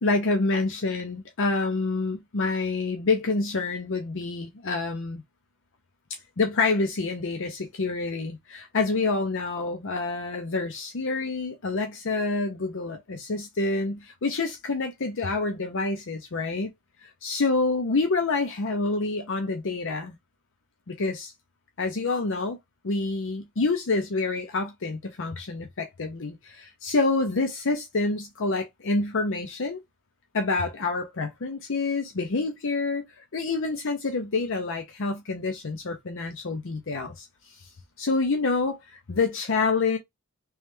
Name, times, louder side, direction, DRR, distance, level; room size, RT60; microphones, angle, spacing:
voice 1, 0.0-5.2 6.1-16.7 17.0-20.2 20.9-21.3 21.8-22.6 22.8-29.8 30.3-37.3 38.0-38.8 39.1-40.0, left 3 dB, 60° left, 0.7 m, -27 dB
3.2 x 3.1 x 3.4 m
head